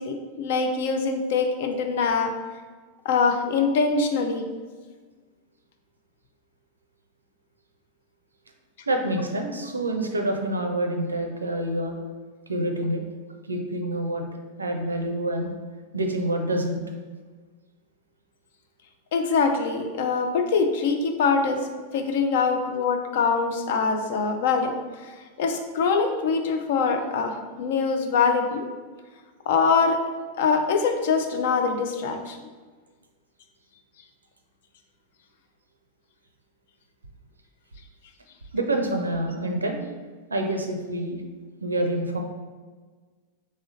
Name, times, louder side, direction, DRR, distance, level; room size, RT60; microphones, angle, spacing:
voice 1, 0.0-2.3 3.0-4.4 19.1-21.6 21.9-24.7 25.0-28.7 29.5-30.0 30.4-32.4, left 5 dB, 55° left, 5 dB, 0.4 m, -23 dB
voice 2, 8.9-12.0 12.5-13.0 13.5-14.3 14.6-15.5 15.9-16.8 38.5-39.9 40.3-41.2 41.6-42.2, right 1 dB, 75° right, 4 dB, 0.4 m, -27 dB
3.6 x 3.2 x 2.7 m, 1.4 s
figure-of-eight pair, 90°, 0 cm